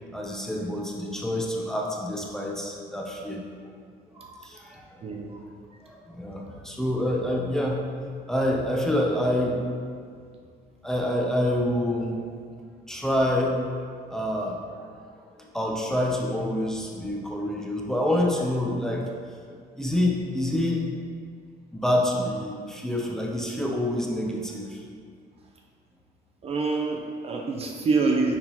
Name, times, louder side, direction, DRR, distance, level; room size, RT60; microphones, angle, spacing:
voice 1, 0.1-3.4 4.2-5.0 5.8-7.8 8.3-9.6 10.8-12.2 12.9-13.6 14.1-14.9 15.4-19.0 19.8-20.8 21.7-24.8, left 1 dB, 5° left, -2 dB, 0.8 m, -27 dB
voice 2, 4.2-4.5 5.0-5.4 26.4-28.4, right 4 dB, 35° right, 1 dB, 0.6 m, -26 dB
9.8 x 3.7 x 3.0 m, 2.1 s
cardioid pair, 110°, 17 cm